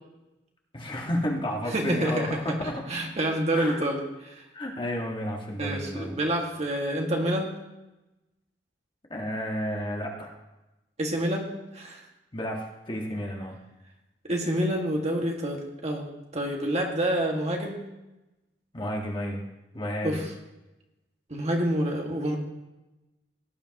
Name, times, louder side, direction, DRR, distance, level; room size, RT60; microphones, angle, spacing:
voice 1, 0.7-2.8 3.5-3.8 4.5-6.1 9.1-10.3 12.3-13.6 18.7-19.4 19.7-20.2, equal, 30° left, 0 dB, 1.6 m, -32 dB
voice 2, 1.7-4.5 5.6-7.5 11.0-12.1 14.2-16.1 16.3-17.8 20.0-20.3 21.3-22.4, right 1 dB, 40° right, 0 dB, 1.8 m, -28 dB
17.5 x 10.0 x 3.0 m, 0.99 s
head